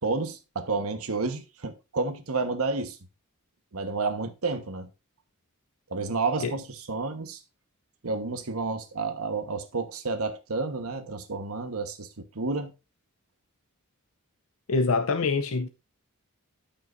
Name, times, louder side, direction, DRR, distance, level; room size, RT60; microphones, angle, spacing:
voice 1, 0.0-3.0 3.7-4.9 5.9-7.4 8.0-12.7, right 3 dB, 85° right, 1.3 m, -30 dB
voice 2, 14.7-15.7, left 4 dB, 70° left, 0.6 m, -25 dB
14.0 x 5.7 x 2.6 m
head